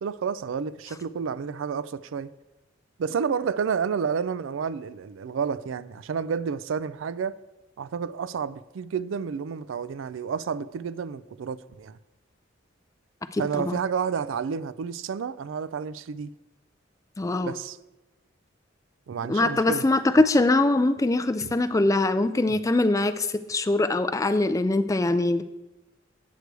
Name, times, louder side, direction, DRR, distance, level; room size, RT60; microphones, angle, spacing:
voice 1, 0.0-2.3 3.0-7.4 7.8-12.0 13.4-16.3 17.4-17.8 19.1-19.9 21.4-21.5 22.5-22.6, right 6 dB, 75° right, 0.4 m, -30 dB
voice 2, 13.3-13.8 17.2-17.5 19.3-25.4, left 2 dB, 15° left, 0.3 m, -23 dB
8.3 x 8.0 x 4.7 m
head